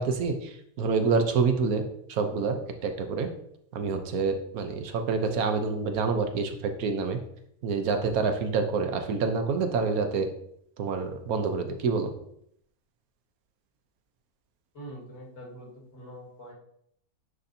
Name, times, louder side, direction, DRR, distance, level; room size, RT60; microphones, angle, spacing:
voice 1, 0.0-1.8 2.1-3.3 3.7-7.2 7.6-10.3 10.8-12.1, right 4 dB, 75° right, 6 dB, 1.2 m, -27 dB
voice 2, 14.7-16.5, right 1 dB, 60° left, -3 dB, 2.1 m, -44 dB
9.5 x 4.2 x 2.7 m, 0.71 s
omnidirectional pair, 1.5 m